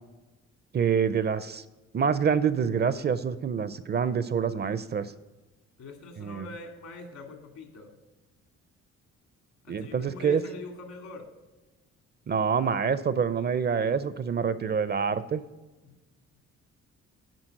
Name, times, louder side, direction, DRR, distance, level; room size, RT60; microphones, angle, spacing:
voice 1, 0.7-1.6 1.9-5.1 6.2-6.5 9.7-10.4 12.3-15.4, right 6 dB, 35° right, 14 dB, 0.5 m, -26 dB
voice 2, 5.8-7.9 9.6-11.3 15.8-16.0, left 3 dB, 70° left, 4 dB, 2.1 m, -43 dB
10.5 x 4.0 x 6.3 m, 1.2 s
cardioid pair, 90°, 30 cm